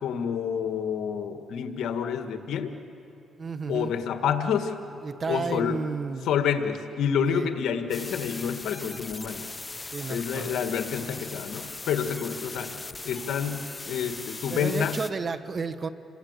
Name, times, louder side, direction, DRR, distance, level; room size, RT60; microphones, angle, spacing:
voice 1, 0.0-2.8 3.7-4.8 5.3-5.8 6.2-9.5 10.1-12.8 13.1-15.0, left 7 dB, 75° left, 7 dB, 1.8 m, -28 dB
voice 2, 3.4-3.9 5.0-6.3 7.3-7.5 9.9-10.6 14.5-15.9, right 4 dB, 40° right, 12 dB, 1.2 m, -32 dB
sound 1, 7.9-15.1, left 3 dB, 20° left, 0.8 m, -39 dB
28.5 x 25.0 x 8.1 m, 2.9 s
cardioid pair, 90°, 0 cm